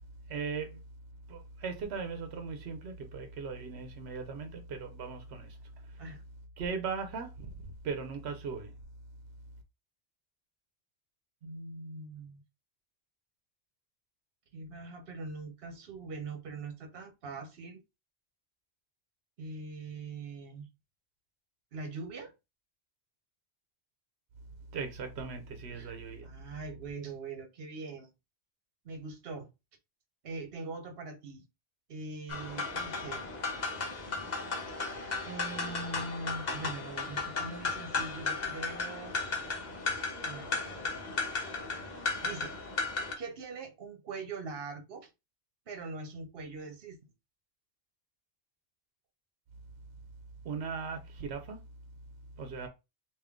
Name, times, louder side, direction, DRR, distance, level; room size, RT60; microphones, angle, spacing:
voice 1, 0.3-0.8 1.3-5.6 6.6-7.5 7.8-8.7 24.7-26.3 50.4-51.6 52.4-52.7, right 5 dB, 90° right, 0.9 m, -38 dB
voice 2, 11.4-12.4 14.5-17.8 19.4-20.7 21.7-22.3 25.7-26.0 26.2-28.1 28.8-29.5 30.2-31.4 31.9-33.3 34.7-34.8 35.2-39.2 40.2-41.0 41.9-42.6 43.2-45.1 45.7-47.0, right 3 dB, 65° right, 1.1 m, -42 dB
sound 1, 32.3-43.1, left 4 dB, 45° left, 1.0 m, -35 dB
3.6 x 2.6 x 3.5 m
omnidirectional pair, 1.1 m